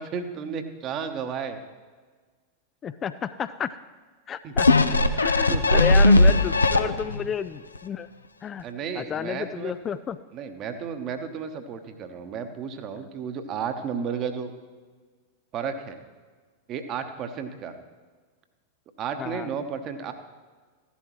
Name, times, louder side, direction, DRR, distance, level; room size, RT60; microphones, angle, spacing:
voice 1, 0.0-1.6 4.4-4.5 4.9-5.0 5.5-6.2 8.6-9.7 10.3-14.5 15.5-16.0 16.7-17.7 19.0-20.1, right 6 dB, 35° right, 8 dB, 1.0 m, -33 dB
voice 2, 2.8-3.8 4.3-4.7 5.1-8.1 8.4-8.7 9.0-10.2 19.2-19.5, left 8 dB, 25° left, 13 dB, 0.3 m, -31 dB
sound 1, 4.6-7.3 7.8-7.9, left 2 dB, 80° left, 0.5 m, -18 dB
15.0 x 11.5 x 3.1 m, 1.5 s
figure-of-eight pair, 90°, 0 cm